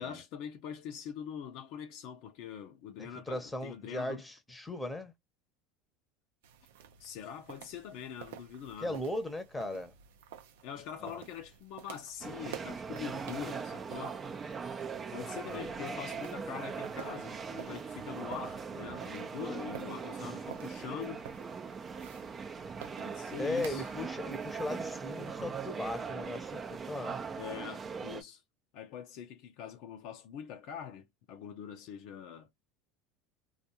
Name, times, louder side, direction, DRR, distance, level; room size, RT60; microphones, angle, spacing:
voice 1, 0.0-4.2 7.0-9.0 10.6-14.2 15.1-21.2 23.0-23.8 27.4-28.4 28.7-32.5, left 8 dB, 65° left, 0.6 m, -43 dB
voice 2, 3.0-5.1 8.8-9.9 11.0-11.2 15.5-16.0 23.4-27.2, left 1 dB, 10° left, 0.9 m, -38 dB
sound 1, 6.4-25.4, right 9 dB, 85° right, 0.5 m, -52 dB
sound 2, 12.2-28.2, right 5 dB, 25° right, 0.5 m, -40 dB
2.5 x 2.4 x 2.7 m
supercardioid pair, 110°, 0 cm